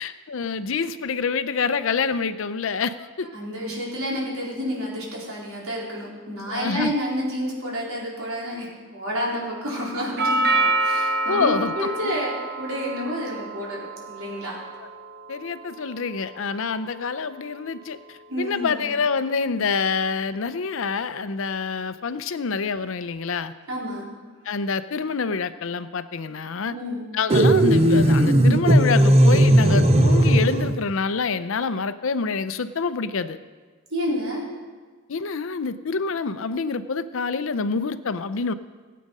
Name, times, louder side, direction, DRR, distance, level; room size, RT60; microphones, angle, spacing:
voice 1, 0.0-3.3 6.5-6.9 11.3-11.7 12.0-12.2 14.8-14.9 15.3-23.5 24.4-26.8 27.1-33.4 35.1-38.5, left 5 dB, 65° left, 13 dB, 0.6 m, -27 dB
voice 2, 3.3-10.5 10.8-12.3 12.6-14.6 18.3-18.8 23.7-24.1 26.7-27.1 33.9-34.4, equal, 75° right, -5 dB, 4.3 m, -29 dB
Doorbell, 10.2-18.2, right 2 dB, 50° right, 1.1 m, -28 dB
sound 1, 27.3-30.8, right 1 dB, 30° right, 0.8 m, -16 dB
18.5 x 8.5 x 5.4 m, 1.4 s
head